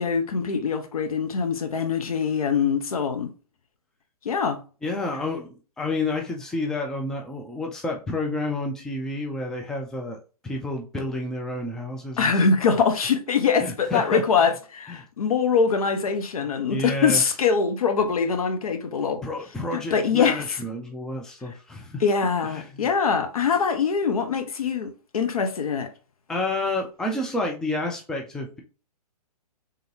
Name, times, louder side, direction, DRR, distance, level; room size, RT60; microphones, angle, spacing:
voice 1, 0.0-3.3 4.2-4.6 12.2-19.2 19.7-20.6 21.5-21.6 22.0-25.9, left 5 dB, 65° left, 0.9 m, -23 dB
voice 2, 4.8-10.2 10.4-12.3 13.6-14.2 14.9-15.0 16.7-17.2 19.2-22.0 22.4-22.8 26.3-28.6, left 2 dB, 5° left, 0.5 m, -30 dB
3.7 x 3.4 x 2.8 m
figure-of-eight pair, 125°, 20 cm